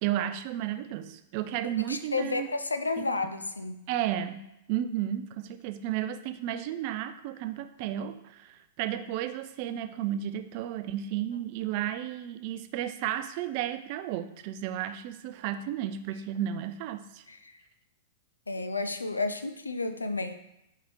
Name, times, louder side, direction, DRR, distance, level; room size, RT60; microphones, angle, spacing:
voice 1, 0.0-2.5 3.0-3.3 3.9-17.2, right 11 dB, 45° right, 10 dB, 0.3 m, -33 dB
voice 2, 1.9-3.8 17.3-17.5 18.5-20.3, left 3 dB, 80° left, 9 dB, 0.3 m, -31 dB
4.6 x 3.6 x 3.0 m, 0.86 s
figure-of-eight pair, 100°, 0 cm